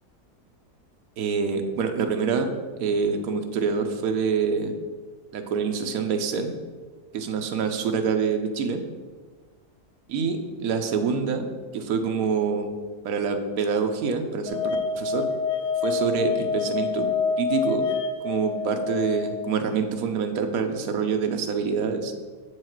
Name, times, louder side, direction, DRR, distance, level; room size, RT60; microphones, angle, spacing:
voice 1, 1.2-2.5 2.8-4.7 5.3-6.5 7.1-8.8 10.1-11.5 11.7-12.7 13.0-14.6 14.9-15.2 15.8-17.1 17.4-17.8 18.2-22.1, right 5 dB, 65° right, 6 dB, 1.1 m, -26 dB
sound 1, 14.5-19.6, left 5 dB, 90° left, 1.3 m, -27 dB
7.1 x 4.8 x 4.5 m, 1.4 s
omnidirectional pair, 1.7 m